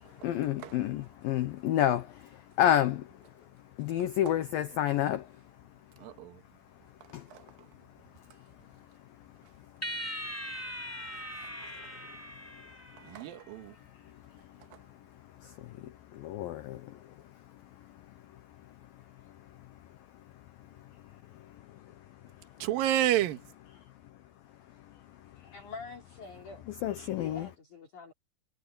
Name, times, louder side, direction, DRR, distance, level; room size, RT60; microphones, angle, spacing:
voice 1, 0.0-3.4 3.7-5.7 6.8-7.6 8.1-13.2 13.9-22.7 23.7-24.2 24.7-25.5 26.7-27.5, left 11 dB, 90° left, 2.0 m, -34 dB
voice 2, 6.0-6.4 7.3-7.4 13.0-13.7 22.6-23.4, right 13 dB, 65° right, 2.7 m, -29 dB
sound 1, 9.8-13.4, equal, 5° left, 4.6 m, -40 dB
voice 3, 25.4-26.7 27.2-28.1, left 5 dB, 45° left, 4.6 m, -45 dB
omnidirectional pair, 5.5 m